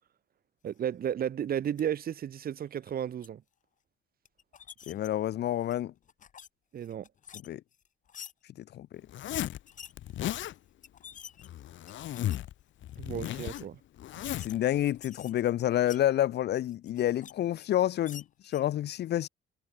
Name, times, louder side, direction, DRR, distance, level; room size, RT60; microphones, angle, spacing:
voice 1, 0.6-3.4 6.7-7.1 13.0-13.8, right 9 dB, 50° right, 1.0 m, -33 dB
sound 1, 1.6-1.8 2.7-3.3 4.3-5.1 5.5-6.5 6.8-8.3 9.5-9.9 10.5-10.6 10.8-12.4 12.9-13.1 13.5-13.6 14.1-14.5 14.8-16.0 16.6-17.3 17.6-18.6, left 8 dB, 40° left, 0.9 m, -49 dB
voice 2, 4.9-5.9 7.4-7.6 8.7-8.9 14.4-19.3, left 12 dB, 60° left, 0.5 m, -28 dB
Zipper (clothing), 9.1-9.6 10.0-10.5 11.4-12.5 12.8-14.6, left 13 dB, 75° left, 0.8 m, -35 dB
wide cardioid pair, 165°, 20 cm